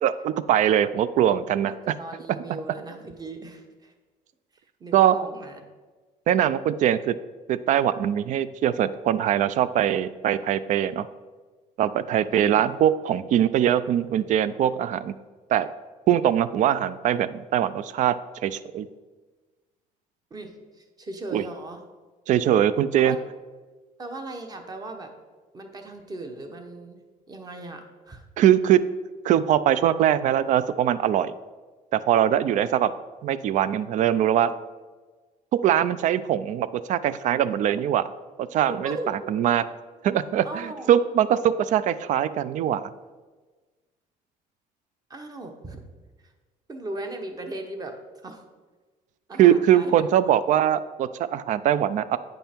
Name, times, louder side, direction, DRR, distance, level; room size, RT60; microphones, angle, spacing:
voice 1, 0.0-1.7 4.9-5.1 6.3-7.1 7.5-11.1 11.8-15.1 15.5-15.7 16.1-18.9 21.3-21.4 22.3-23.2 28.4-28.8 29.2-31.3 31.9-32.9 33.2-34.5 35.6-38.1 38.4-39.0 39.3-39.6 40.0-42.9 49.4-52.2, right 10 dB, 55° right, 15 dB, 0.4 m, -22 dB
voice 2, 1.6-3.9 4.8-5.6 12.3-12.7 20.3-21.8 23.0-23.2 24.0-25.1 25.5-27.0 27.3-28.3 38.7-39.1 40.4-41.0 45.1-45.8 46.2-46.3 46.7-47.9 48.2-48.4 49.3-50.3, right 2 dB, 25° right, 5 dB, 1.0 m, -38 dB
9.2 x 5.4 x 4.4 m, 1.3 s
cardioid pair, 135°, 15 cm